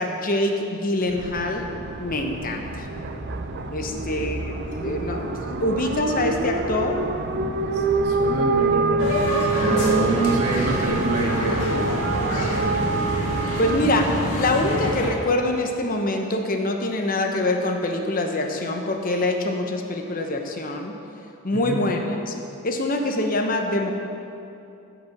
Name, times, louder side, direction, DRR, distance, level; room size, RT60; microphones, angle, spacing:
voice 1, 0.0-1.7 2.0-2.9 3.7-7.0 13.6-20.9 21.4-22.0 22.3-22.4 22.6-23.9, left 1 dB, 40° left, 3 dB, 0.9 m, -25 dB
sound 1, 1.1-13.8, right 4 dB, 50° right, 0.5 m, -27 dB
sound 2, 2.6-14.5, equal, 55° left, 2.1 m, -39 dB
voice 2, 7.4-11.8 12.3-12.9 21.5-21.8, right 2 dB, 85° right, -1 dB, 1.7 m, -27 dB
sound 3, 9.0-15.1, equal, 75° left, 1.9 m, -27 dB
15.0 x 5.2 x 6.0 m, 2.7 s
head